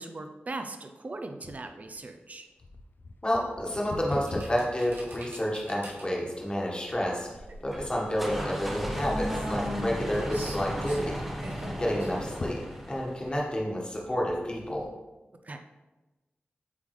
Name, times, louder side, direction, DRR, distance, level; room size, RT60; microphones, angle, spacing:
voice 1, 0.0-2.5 15.4-15.6, right 2 dB, 40° right, 5 dB, 0.5 m, -39 dB
sound 1, 1.4-5.9 6.5-6.6 7.3-7.5 7.8-8.5 9.0-9.7 10.1-10.2 10.4-10.5 12.1-13.2 13.8-13.9, left 2 dB, 60° left, 0.5 m, -43 dB
voice 2, 3.2-7.3 7.6-11.2 11.8-12.6 12.9-14.9, equal, 25° left, -3 dB, 1.4 m, -30 dB
sound 2, 4.1-14.8, equal, 90° right, 1.7 m, -41 dB
engine-start, 7.7-13.3, equal, 5° right, 0.9 m, -35 dB
8.2 x 3.5 x 3.2 m, 1.1 s
wide cardioid pair, 65°, 4 cm